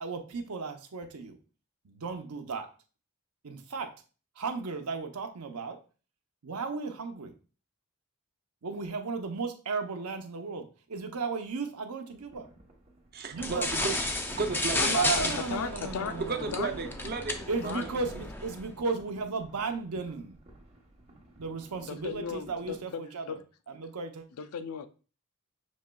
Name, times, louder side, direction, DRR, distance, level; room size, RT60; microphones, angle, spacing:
voice 1, 0.0-1.4 1.8-2.7 3.4-3.9 4.4-5.8 6.4-7.3 8.6-12.5 13.3-13.7 14.9-17.0 17.5-20.4 21.4-23.4 23.7-24.2, right 4 dB, 85° right, 0.7 m, -35 dB
sound 1, 12.1-22.8, right 1 dB, 30° right, 0.9 m, -52 dB
voice 2, 13.1-14.9 16.2-17.7, right 4 dB, 45° right, 0.5 m, -34 dB
sound 2, 13.4-18.7, left 2 dB, 10° left, 0.3 m, -33 dB
voice 3, 14.8-16.2 16.5-16.7 17.6-17.8 21.8-23.4 24.4-24.9, left 6 dB, 80° left, 0.4 m, -36 dB
6.2 x 3.0 x 2.2 m
head